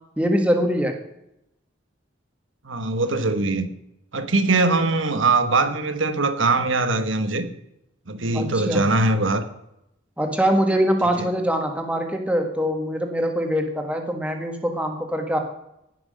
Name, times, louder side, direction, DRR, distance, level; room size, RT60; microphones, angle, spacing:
voice 1, 0.2-1.0 8.3-8.8 10.2-15.4, equal, 5° right, 1.5 m, -23 dB
voice 2, 2.6-3.7 4.1-7.5 8.1-9.4 11.2-11.3, right 3 dB, 75° right, 1.3 m, -21 dB
18.0 x 6.2 x 6.4 m
head